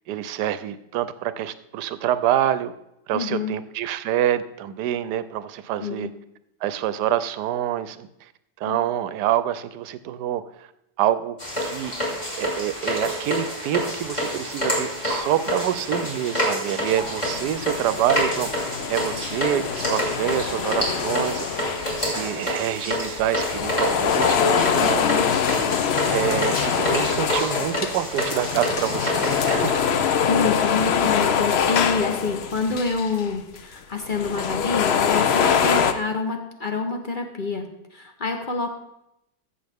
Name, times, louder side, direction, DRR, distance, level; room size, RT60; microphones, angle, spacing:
voice 1, 0.1-2.7 3.1-6.1 6.6-8.3 8.6-10.7 11.0-11.4 11.6-11.9 12.3-25.0 26.1-29.9, right 11 dB, 75° right, 14 dB, 1.1 m, -26 dB
voice 2, 3.1-3.6 5.8-6.1 8.7-8.8 24.8-25.3 30.3-38.7, left 4 dB, 40° left, 5 dB, 0.8 m, -27 dB
sound 1, 11.4-29.7, equal, 25° left, 2.6 m, -28 dB
sound 2, 16.9-22.5 23.1-33.3 33.6-33.7 34.0-35.9, left 7 dB, 85° left, 0.5 m, -24 dB
14.5 x 7.0 x 3.5 m, 0.83 s
omnidirectional pair, 1.9 m